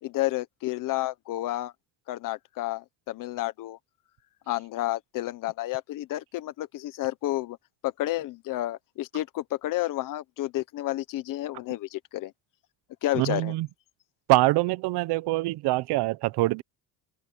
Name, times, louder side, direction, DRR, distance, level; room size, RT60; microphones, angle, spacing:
voice 1, 0.0-1.7 2.1-3.8 4.5-7.6 7.8-12.3 13.0-13.5, left 16 dB, 50° left, 1.0 m, -31 dB
voice 2, 13.1-13.7 14.3-16.6, right 19 dB, 70° right, 0.9 m, -24 dB
open air
cardioid pair, 180°, 41 cm